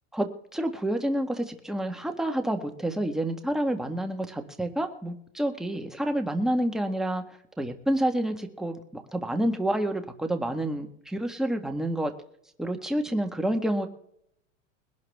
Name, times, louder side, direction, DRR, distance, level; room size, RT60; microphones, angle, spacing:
voice 1, 0.1-7.2 7.6-12.1 12.6-13.9, right 1 dB, ahead, 5 dB, 1.5 m, -28 dB
21.0 x 12.0 x 3.5 m, 0.70 s
supercardioid pair, 130°, 40 cm